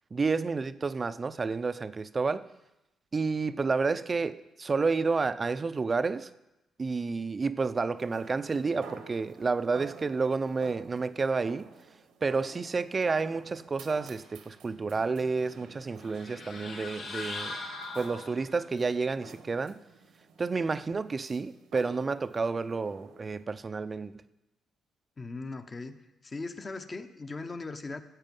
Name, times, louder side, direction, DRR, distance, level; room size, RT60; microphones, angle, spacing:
voice 1, 0.1-2.4 3.1-6.3 6.8-11.7 12.2-17.6 18.0-19.8 20.4-24.1, right 4 dB, 30° right, 0.5 m, -30 dB
sound 1, 8.0-23.4, right 5 dB, 85° right, 1.3 m, -51 dB
sound 2, 16.0-18.6, left 3 dB, 75° left, 4.9 m, -40 dB
voice 2, 25.2-26.0 26.2-28.0, left 3 dB, 30° left, 0.9 m, -39 dB
14.5 x 8.2 x 5.4 m
cardioid pair, 90°, 0 cm